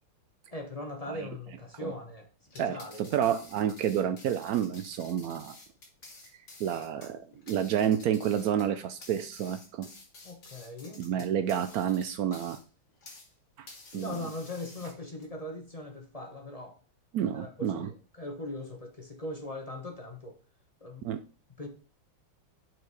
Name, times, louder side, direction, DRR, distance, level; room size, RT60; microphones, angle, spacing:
voice 1, 0.5-3.3 10.2-11.0 13.9-16.8 17.3-20.4 20.8-21.1 21.6-21.7, left 1 dB, 25° left, 3 dB, 0.8 m, -40 dB
sound 1, 2.4-13.3 13.7-15.3, left 3 dB, 55° left, 2.4 m, -51 dB
voice 2, 2.6-5.6 6.6-9.9 11.0-12.6 13.6-13.7 13.9-14.2 17.1-17.9 21.0-21.2, right 9 dB, 85° right, 10 dB, 0.8 m, -29 dB
6.0 x 4.6 x 4.7 m, 0.37 s
omnidirectional pair, 2.2 m